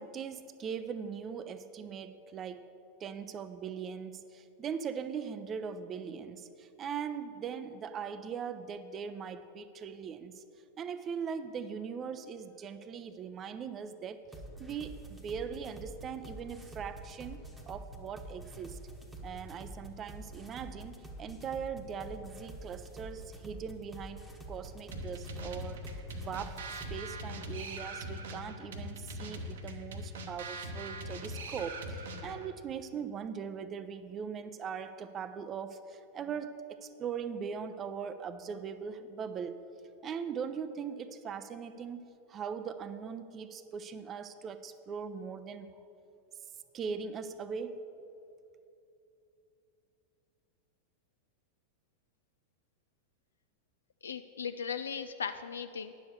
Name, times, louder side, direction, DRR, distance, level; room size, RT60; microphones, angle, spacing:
voice 1, 0.0-2.7 3.0-10.4 10.8-14.3 14.6-18.8 19.2-39.6 40.0-45.7 46.7-47.9, right 6 dB, 25° right, 11 dB, 0.5 m, -40 dB
sound 1, 14.3-27.0, right 1 dB, 5° right, 1.1 m, -47 dB
sound 2, 24.9-32.5, equal, 60° right, 0.9 m, -41 dB
voice 2, 54.0-55.9, left 6 dB, 70° left, 9 dB, 0.3 m, -37 dB
10.0 x 7.0 x 6.7 m, 2.7 s
figure-of-eight pair, 90°, 0 cm